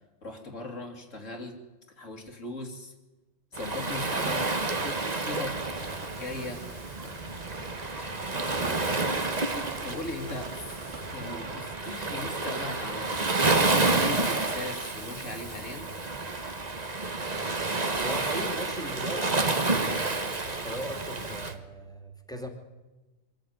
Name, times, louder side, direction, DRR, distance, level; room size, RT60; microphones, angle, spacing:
voice 1, 0.2-1.5 2.0-2.9 3.5-5.9 6.2-6.6 7.0-7.2 8.3-9.2 9.8-10.8 11.1-15.9, left 2 dB, 75° left, 5 dB, 3.1 m, -39 dB
Waves surf, 3.5-21.5, right 3 dB, 35° right, 1.5 m, -30 dB
sound 1, 5.8-11.2, right 2 dB, 60° right, 2.9 m, -47 dB
voice 2, 18.0-22.5, equal, 5° left, 4 dB, 2.6 m, -38 dB
24.0 x 14.0 x 9.4 m, 1.1 s
omnidirectional pair, 1.3 m